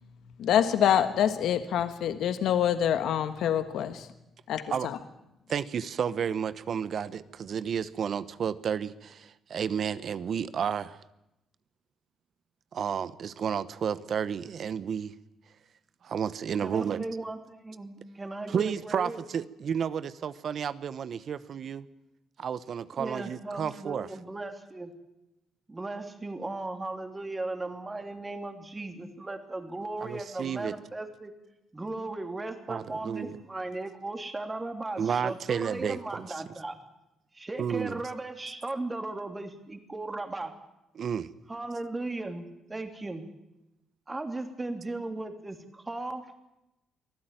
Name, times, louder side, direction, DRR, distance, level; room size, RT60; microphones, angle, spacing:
voice 1, 0.4-4.1 4.5-5.0, left 9 dB, 80° left, 10 dB, 1.4 m, -26 dB
voice 2, 5.5-11.0 12.7-15.1 16.0-17.0 18.5-21.9 22.4-24.1 30.0-30.7 32.7-33.4 35.0-36.2 37.6-38.0 41.0-41.3, right 7 dB, 55° right, 15 dB, 1.0 m, -31 dB
voice 3, 16.6-19.2 23.0-24.9 25.7-31.3 31.7-36.8 37.3-40.5 41.5-43.2 44.1-46.2, right 2 dB, 20° right, 6 dB, 3.1 m, -37 dB
24.0 x 15.0 x 9.2 m, 0.90 s
cardioid pair, 90°, 0 cm